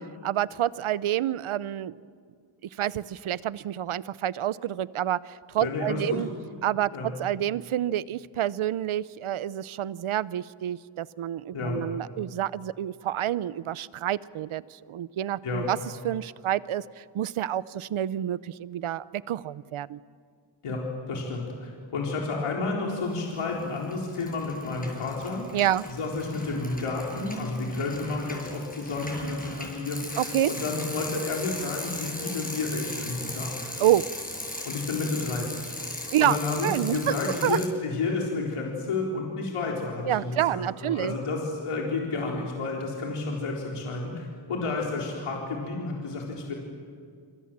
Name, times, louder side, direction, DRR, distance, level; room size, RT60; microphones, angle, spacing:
voice 1, 0.2-2.0 2.8-6.3 6.6-15.8 16.0-20.0 25.5-25.8 30.2-30.5 33.8-34.0 36.1-37.1 37.4-37.6 40.1-41.1, right 12 dB, 75° right, 18 dB, 0.8 m, -28 dB
voice 2, 5.6-6.2 6.9-7.1 11.5-11.8 15.4-15.7 20.6-20.8 21.1-25.5 26.0-30.2 30.5-33.7 34.6-35.7 36.2-46.5, left 3 dB, 90° left, -1 dB, 4.1 m, -31 dB
Bicycle, 23.2-23.6 23.9-37.7, left 1 dB, 15° left, 7.2 m, -38 dB
26.5 x 26.5 x 7.5 m, 2.2 s
cardioid pair, 90°, 50 cm